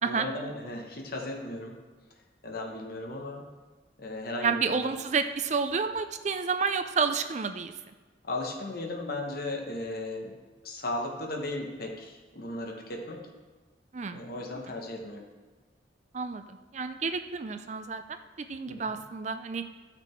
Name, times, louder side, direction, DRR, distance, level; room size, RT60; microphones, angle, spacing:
voice 1, 0.0-1.8 2.4-3.5 4.0-4.9 8.2-10.3 10.6-13.2 14.1-15.3 18.7-19.0, left 2 dB, 55° left, 1 dB, 1.2 m, -36 dB
voice 2, 4.4-7.7 13.9-14.2 16.1-19.6, right 5 dB, 40° right, 9 dB, 0.5 m, -30 dB
13.0 x 5.9 x 4.6 m, 1.3 s
head